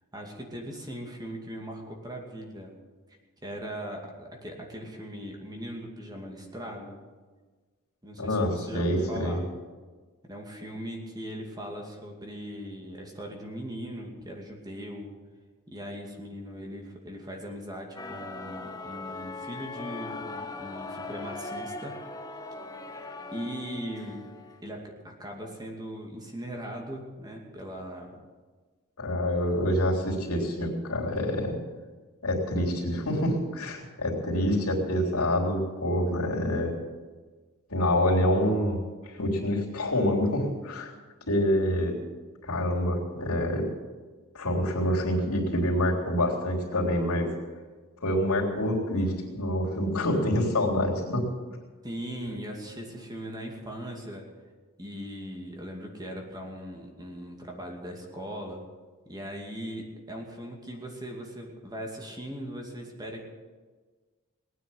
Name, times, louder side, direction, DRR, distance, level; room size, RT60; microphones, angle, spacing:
voice 1, 0.1-2.7 3.4-7.0 8.0-9.5 10.3-15.1 15.7-22.0 23.3-24.3 24.6-28.2 51.8-54.3 54.8-58.6 59.1-63.2, equal, 20° right, 1 dB, 2.4 m, -39 dB
voice 2, 8.2-9.4 29.0-31.5 32.2-36.8 37.7-38.8 39.1-40.9 41.3-41.9 42.4-43.7 44.3-47.3 48.0-51.3, left 1 dB, 75° left, -2 dB, 3.7 m, -26 dB
sound 1, 18.0-24.6, left 3 dB, 15° left, 1.3 m, -39 dB
20.0 x 9.3 x 7.8 m, 1.4 s
head